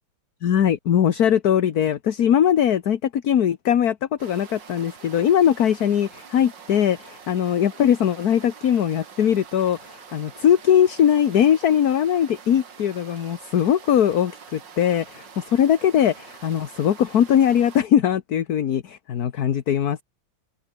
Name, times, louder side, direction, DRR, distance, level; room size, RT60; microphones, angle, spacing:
voice 1, 0.4-20.0, left 9 dB, 50° left, 1.4 m, -20 dB
sound 1, 4.2-17.8, right 6 dB, 55° right, 2.7 m, -45 dB
open air
omnidirectional pair, 2.4 m